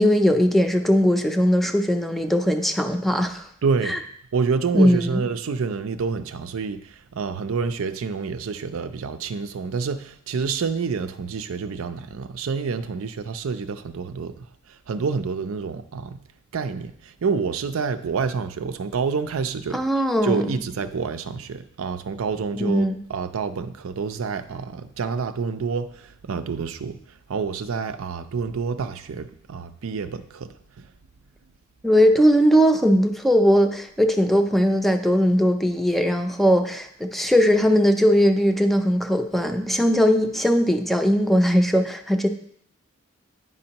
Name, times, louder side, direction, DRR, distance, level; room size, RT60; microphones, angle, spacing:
voice 1, 0.0-3.4 3.9-4.0 4.7-5.2 19.7-20.6 22.6-23.0 31.8-42.3, equal, ahead, 5 dB, 0.5 m, -19 dB
voice 2, 3.6-4.0 4.3-16.2 16.5-19.8 20.2-27.0 27.3-30.9, right 5 dB, 85° right, 10 dB, 0.5 m, -28 dB
9.6 x 5.3 x 2.9 m, 0.66 s
head